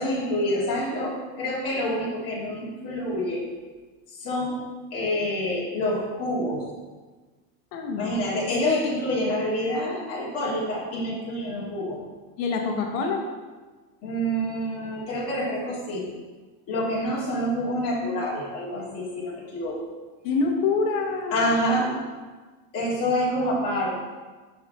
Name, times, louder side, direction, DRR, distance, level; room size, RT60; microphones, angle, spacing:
voice 1, 0.0-3.5 4.1-4.6 4.9-6.7 8.0-12.0 14.0-16.0 16.7-19.8 21.3-22.0 22.7-23.9, equal, 35° left, -5 dB, 2.0 m, -27 dB
voice 2, 7.7-8.1 12.4-13.2 20.2-21.5, left 4 dB, 60° left, 2 dB, 1.0 m, -26 dB
6.2 x 4.8 x 4.1 m, 1.3 s
supercardioid pair, 165°, 42 cm